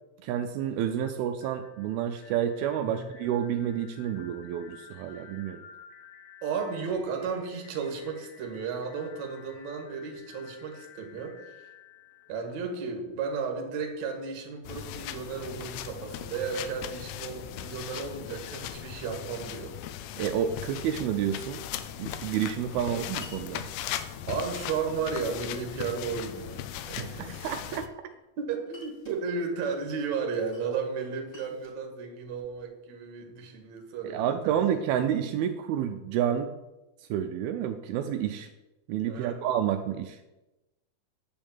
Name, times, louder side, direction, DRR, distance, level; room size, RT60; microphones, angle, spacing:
voice 1, 0.2-5.6 20.2-21.6 22.0-23.6 27.0-27.1 27.4-27.8 34.0-36.5 37.1-38.5 38.9-40.2, right 9 dB, 85° right, 6 dB, 2.5 m, -29 dB
sound 1, 1.4-13.2, left 7 dB, 70° left, 1.4 m, -53 dB
voice 2, 6.4-11.7 12.3-19.7 22.8-23.1 23.8-27.5 28.4-35.1 39.1-39.4, right 5 dB, 55° right, 3 dB, 2.5 m, -34 dB
sound 2, 14.6-27.9, left 11 dB, 90° left, 2.6 m, -38 dB
Glass, 23.2-23.4 24.6-25.1 26.0-26.7 27.5-28.2 28.7-29.2 30.3-30.7 31.0-32.6, left 2 dB, 15° left, 2.3 m, -53 dB
10.0 x 5.3 x 7.2 m, 1.0 s
omnidirectional pair, 4.4 m